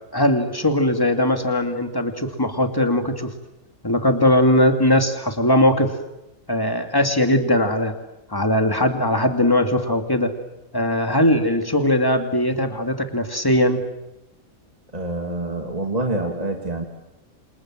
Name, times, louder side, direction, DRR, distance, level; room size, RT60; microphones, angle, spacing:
voice 1, 0.1-3.3 3.8-5.9 6.5-8.0 8.3-10.3 10.7-13.8, left 1 dB, 15° left, 5 dB, 2.6 m, -20 dB
voice 2, 14.9-16.8, right 2 dB, 30° right, 2 dB, 2.5 m, -26 dB
28.5 x 27.5 x 7.7 m, 0.92 s
omnidirectional pair, 1.4 m